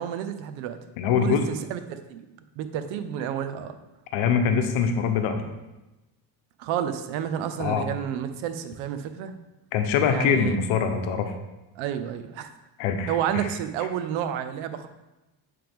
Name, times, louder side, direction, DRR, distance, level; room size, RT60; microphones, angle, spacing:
voice 1, 0.0-0.8 1.2-2.2 2.6-3.8 6.6-9.3 10.1-10.6 11.8-12.5 13.1-14.9, right 9 dB, 85° right, 10 dB, 0.7 m, -30 dB
voice 2, 1.0-1.4 4.1-5.4 7.6-7.9 9.7-11.3 12.8-13.4, left 6 dB, 85° left, 6 dB, 0.9 m, -24 dB
8.8 x 3.4 x 3.5 m, 1.0 s
supercardioid pair, 90°, 46 cm